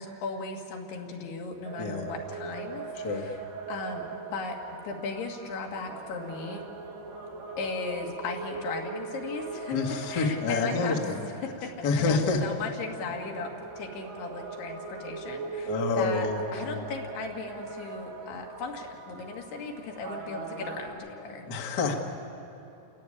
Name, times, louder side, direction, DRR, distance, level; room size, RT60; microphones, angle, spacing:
voice 1, 0.0-3.4 3.7-4.1 4.3-4.6 4.8-6.6 7.6-9.8 10.1-21.5, left 4 dB, 80° left, 1 dB, 4.0 m, -37 dB
sound 1, 1.7-20.9, right 4 dB, 70° right, 4.0 m, -40 dB
voice 2, 1.8-2.1 3.0-3.2 9.7-11.2 11.8-12.4 15.7-16.9 21.5-21.9, left 4 dB, 60° left, 2 dB, 1.1 m, -28 dB
30.0 x 14.0 x 9.8 m, 3.0 s
omnidirectional pair, 4.7 m